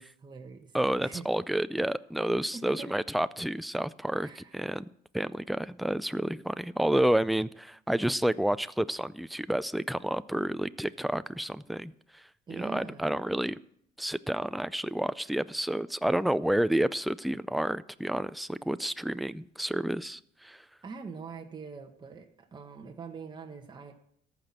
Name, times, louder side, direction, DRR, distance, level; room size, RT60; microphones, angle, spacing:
voice 1, 0.0-0.7 1.0-1.3 2.5-2.9 4.2-4.6 12.5-13.2 20.8-23.9, right 5 dB, 25° right, 3 dB, 1.6 m, -43 dB
voice 2, 0.7-4.9 5.1-11.9 12.5-13.6 14.0-20.6, right 1 dB, ahead, 15 dB, 0.4 m, -30 dB
14.0 x 6.0 x 8.8 m, 0.68 s
cardioid pair, 110°, 17 cm